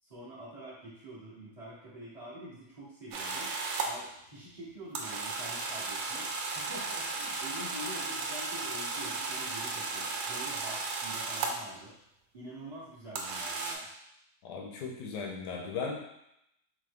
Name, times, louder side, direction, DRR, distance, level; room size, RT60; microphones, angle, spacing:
voice 1, 0.0-3.5 3.8-11.9 12.3-13.9, right 1 dB, 35° right, -8 dB, 0.6 m, -46 dB
sound 1, 3.1-3.9 4.9-11.7 13.2-13.7, right 3 dB, 70° right, 0.9 m, -35 dB
voice 2, 14.4-16.0, left 5 dB, 80° left, -1 dB, 1.2 m, -37 dB
3.7 x 3.0 x 3.4 m, 0.81 s
omnidirectional pair, 1.8 m